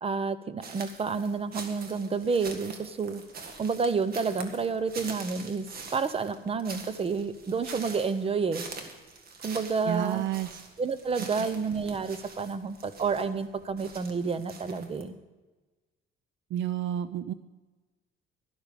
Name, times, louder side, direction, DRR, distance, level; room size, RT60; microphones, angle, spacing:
voice 1, 0.0-3.2 3.6-5.7 5.9-8.7 9.4-10.3 10.8-15.2, right 5 dB, 25° right, 13 dB, 0.8 m, -30 dB
sound 1, 0.6-15.0, right 4 dB, 45° right, 1.8 m, -45 dB
voice 2, 9.8-10.5 11.2-11.5 16.5-17.3, right 10 dB, 65° right, 14 dB, 0.5 m, -30 dB
12.5 x 12.0 x 5.2 m, 1.2 s
cardioid pair, 130°, 21 cm